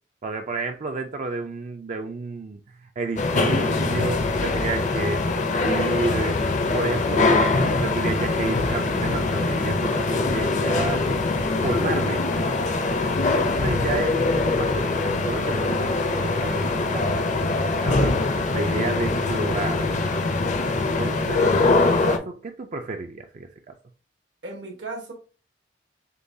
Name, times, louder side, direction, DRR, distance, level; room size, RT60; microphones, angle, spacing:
voice 1, 0.2-2.6 3.0-6.4 6.7-11.1 11.6-12.4 13.3-19.9 21.0-23.7, right 3 dB, 40° right, 0.4 m, -31 dB
sound 1, 3.2-22.2, left 3 dB, 45° left, 0.5 m, -23 dB
voice 2, 21.1-21.6 24.4-25.1, right 2 dB, 80° right, 1.2 m, -37 dB
6.6 x 2.3 x 2.6 m
head